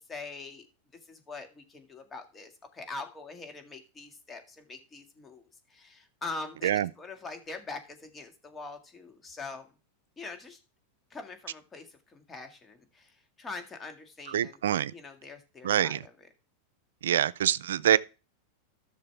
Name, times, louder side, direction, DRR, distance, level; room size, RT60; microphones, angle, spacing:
voice 1, 0.1-0.7 1.1-9.7 10.2-10.6 11.1-14.6 14.9-16.3, left 3 dB, 20° left, 2.0 m, -43 dB
voice 2, 14.3-14.9 15.6-16.0 17.0-18.0, right 10 dB, 85° right, 0.4 m, -25 dB
13.5 x 6.6 x 3.4 m
hypercardioid pair, 115°, 0 cm